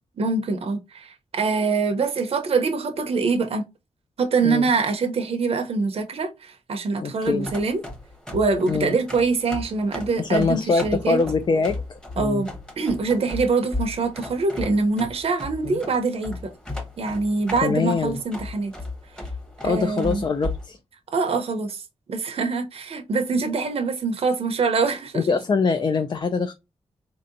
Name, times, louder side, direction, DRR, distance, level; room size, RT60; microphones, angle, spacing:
voice 1, 0.2-3.6 4.2-7.8 8.3-11.2 12.2-16.5 17.0-18.7 19.6-20.2 21.1-21.8 22.1-25.3, right 4 dB, 55° right, 0.7 m, -24 dB
voice 2, 7.0-7.5 8.7-9.0 10.2-12.4 15.6-15.8 17.6-18.2 19.6-20.8 25.1-26.5, left 4 dB, 40° left, 0.4 m, -24 dB
sound 1, 7.2-20.7, left 2 dB, 5° left, 1.0 m, -36 dB
4.2 x 2.7 x 2.5 m
wide cardioid pair, 130°, 12 cm